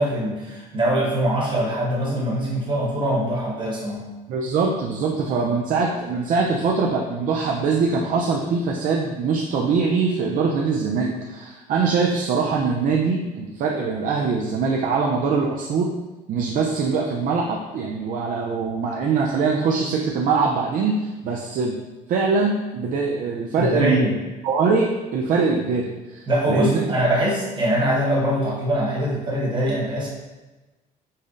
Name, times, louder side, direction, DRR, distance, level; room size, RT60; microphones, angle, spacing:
voice 1, 0.0-4.0 23.5-24.1 26.3-30.1, equal, 30° right, -4 dB, 1.1 m, -23 dB
voice 2, 4.3-15.9 16.3-21.8 22.1-24.1 24.4-26.8 27.1-27.2, right 4 dB, 50° right, -1 dB, 0.4 m, -23 dB
5.3 x 2.1 x 2.4 m, 1.2 s
cardioid pair, 110°, 17 cm